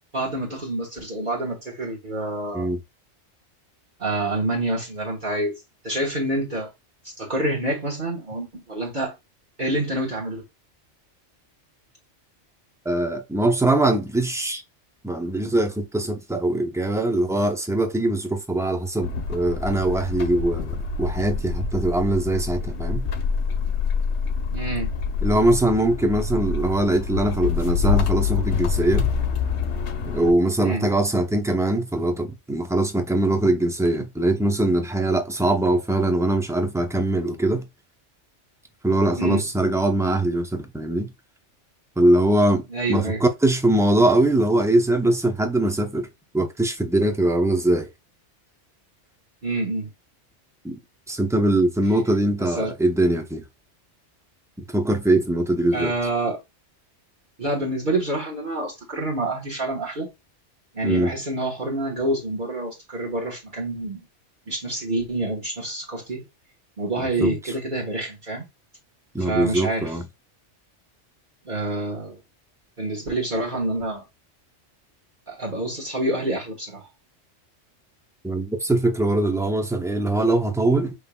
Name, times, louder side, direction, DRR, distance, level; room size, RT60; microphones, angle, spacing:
voice 1, 0.1-2.7 4.0-6.7 7.0-9.1 9.6-10.4 24.5-24.9 30.6-30.9 39.2-39.4 42.7-43.2 49.4-49.9 52.4-52.7 55.7-56.4 57.4-60.1 60.7-64.0 64.5-66.3 66.8-68.4 69.2-70.0 71.4-72.2 72.8-74.1 75.3-76.9, right 1 dB, 45° right, 1.4 m, -27 dB
voice 2, 12.9-14.6 15.0-23.1 25.2-29.1 30.1-37.6 38.8-41.1 42.0-42.6 42.9-46.1 46.3-47.9 50.6-50.8 51.1-53.4 54.7-55.9 60.8-61.1 67.2-67.4 69.1-70.0 78.2-80.9, right 1 dB, 5° right, 0.5 m, -22 dB
sound 1, 19.0-30.3, left 5 dB, 75° left, 1.1 m, -26 dB
5.4 x 3.4 x 2.2 m
omnidirectional pair, 1.2 m